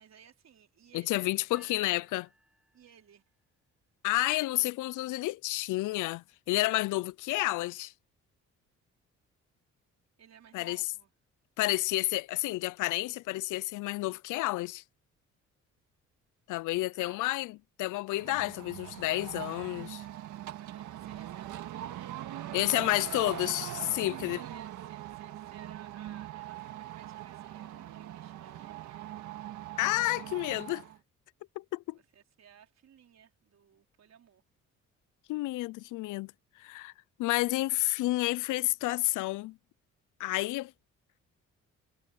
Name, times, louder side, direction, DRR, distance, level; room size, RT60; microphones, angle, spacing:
voice 1, 0.0-1.9 2.7-3.2 10.2-11.1 16.9-17.2 20.2-23.0 24.0-29.0 31.9-34.4, right 8 dB, 60° right, 4.7 m, -58 dB
voice 2, 0.9-2.3 4.0-7.9 10.5-10.8 11.6-14.8 16.5-20.0 22.5-24.4 29.8-30.8 31.6-32.0 35.3-36.3 36.6-36.9 37.2-39.6 40.2-40.7, left 18 dB, 85° left, 0.5 m, -30 dB
sound 1, 1.5-3.6, right 1 dB, 5° right, 3.4 m, -62 dB
sound 2, 18.1-31.0, right 12 dB, 80° right, 1.9 m, -42 dB
cardioid pair, 90°, 30 cm